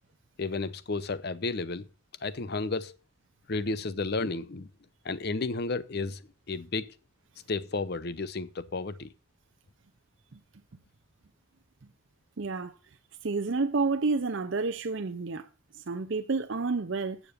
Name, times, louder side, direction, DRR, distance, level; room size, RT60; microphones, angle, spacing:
voice 1, 0.4-1.9 2.2-2.9 3.5-4.7 5.0-6.2 6.5-6.9 7.5-9.1, left 3 dB, 50° left, 0.6 m, -32 dB
voice 2, 12.4-12.8 13.2-15.5 15.7-17.2, right 4 dB, 60° right, 0.6 m, -30 dB
7.9 x 7.3 x 6.5 m
head